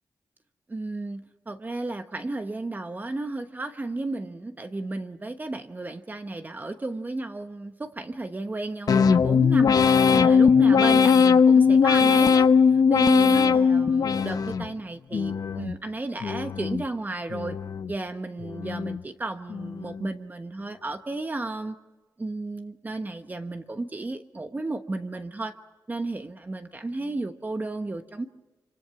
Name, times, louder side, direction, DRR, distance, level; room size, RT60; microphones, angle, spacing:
voice 1, 0.7-9.7 10.1-17.6 17.9-21.8 22.2-25.5 25.9-28.3, right 2 dB, 25° right, 7 dB, 1.1 m, -33 dB
sound 1, 8.9-14.7 15.1-15.8 16.2-16.9 17.3-18.0 18.4-19.0 19.5-20.0, left 6 dB, 60° left, 0.8 m, -20 dB
26.5 x 26.0 x 5.9 m, 1.2 s
wide cardioid pair, 115°, 7 cm